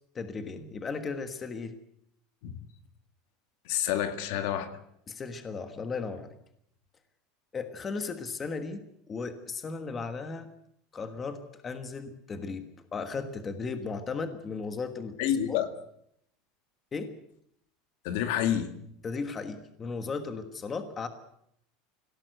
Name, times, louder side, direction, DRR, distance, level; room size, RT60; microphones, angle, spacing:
voice 1, 0.1-1.7 5.1-6.4 7.5-10.5 10.9-15.2 15.5-15.6 16.9-17.1 19.0-21.1, left 4 dB, 15° left, 8 dB, 1.4 m, -36 dB
voice 2, 3.7-4.7 15.2-15.7 18.0-18.8, left 10 dB, 60° left, 9 dB, 2.0 m, -28 dB
25.5 x 17.0 x 7.9 m, 0.73 s
supercardioid pair, 175°, 0 cm